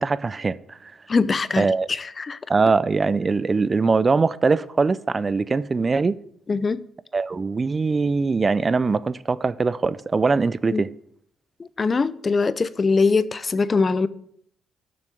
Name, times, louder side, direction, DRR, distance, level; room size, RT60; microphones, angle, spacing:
voice 1, 0.0-0.9 1.6-1.9 2.5-6.2 7.1-10.9, right 4 dB, 30° right, 0.5 m, -22 dB
voice 2, 1.1-2.4 6.5-6.9 10.7-10.8 11.6-14.1, left 4 dB, 35° left, 0.5 m, -22 dB
7.0 x 6.3 x 7.8 m
cardioid pair, 90°, 0 cm